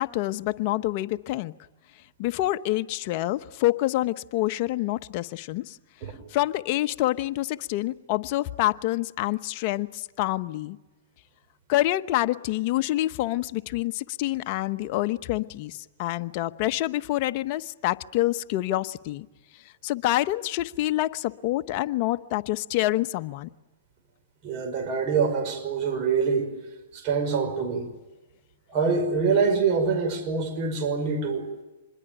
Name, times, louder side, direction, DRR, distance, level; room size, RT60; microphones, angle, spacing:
voice 1, 0.0-1.5 2.2-5.8 6.3-10.8 11.7-19.3 19.8-23.5, left 16 dB, 45° left, 11 dB, 1.0 m, -27 dB
voice 2, 24.4-26.5 26.9-27.9 28.7-31.5, right 5 dB, 40° right, 7 dB, 5.6 m, -25 dB
26.0 x 21.5 x 9.2 m, 1.1 s
hypercardioid pair, 130°, 0 cm